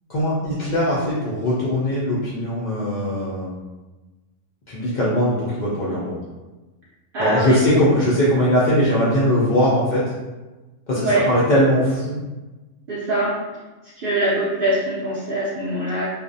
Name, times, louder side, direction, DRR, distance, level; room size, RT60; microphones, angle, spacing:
voice 1, 0.1-3.5 4.7-6.1 7.2-10.1 10.9-12.2, equal, 80° left, -9 dB, 0.4 m, -20 dB
voice 2, 7.1-7.6 11.0-11.3 12.9-13.4 14.0-16.0, right 1 dB, 70° right, -7 dB, 0.5 m, -23 dB
2.4 x 2.0 x 2.5 m, 1.2 s
omnidirectional pair, 1.4 m